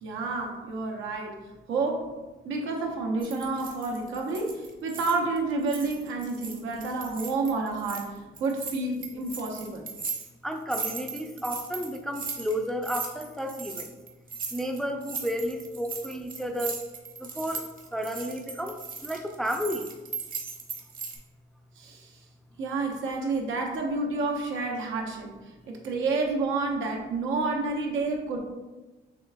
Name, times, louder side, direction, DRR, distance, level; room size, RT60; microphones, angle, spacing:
voice 1, 0.0-1.4 1.7-2.1 2.4-9.9 21.8-22.1 22.6-25.3 25.7-28.5, right 3 dB, 85° right, 1 dB, 0.8 m, -29 dB
sound 1, 3.2-5.4 5.6-8.0 8.4-21.2, right 5 dB, 45° right, 0.9 m, -38 dB
voice 2, 10.4-13.9 14.5-16.8 17.2-17.6 17.9-18.8 19.0-19.9, equal, ahead, 4 dB, 0.4 m, -32 dB
6.0 x 3.3 x 2.2 m, 1.2 s
cardioid pair, 90°, 20 cm